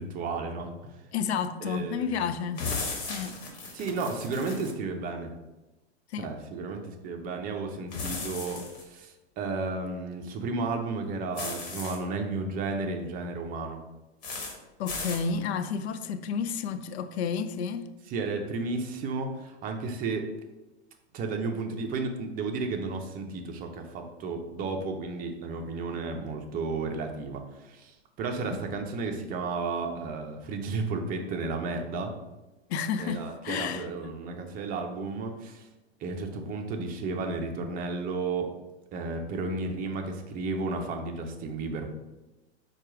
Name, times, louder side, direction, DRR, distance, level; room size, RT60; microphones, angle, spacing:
voice 1, 0.0-1.0 1.6-2.3 3.7-5.3 6.2-13.8 18.1-20.3 21.1-32.1 33.0-35.7 36.0-38.5 38.9-41.9, right 3 dB, 25° right, 0.6 m, -33 dB
voice 2, 1.1-2.6 3.1-3.4 6.1-6.3 14.8-17.9 28.5-28.6 32.7-33.9, left 6 dB, 75° left, 0.5 m, -31 dB
sound 1, 2.6-4.7 7.9-8.8 11.3-12.0 14.2-14.5 14.9-15.2, left 4 dB, 55° left, 1.4 m, -35 dB
4.4 x 2.4 x 4.8 m
hypercardioid pair, 125°, 33 cm